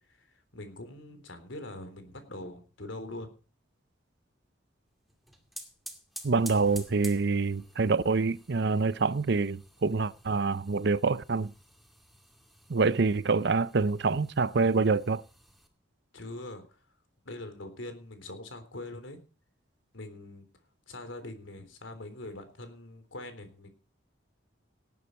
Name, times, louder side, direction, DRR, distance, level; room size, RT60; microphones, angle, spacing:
voice 1, 0.1-3.3 16.1-16.9 17.2-19.2 19.9-20.5 20.9-23.7, left 1 dB, 75° left, 3.6 m, -43 dB
sound 1, 5.1-15.7, right 1 dB, ahead, 2.3 m, -50 dB
voice 2, 6.2-11.5 12.7-15.2, right 4 dB, 55° right, 0.6 m, -26 dB
18.0 x 9.7 x 4.5 m
head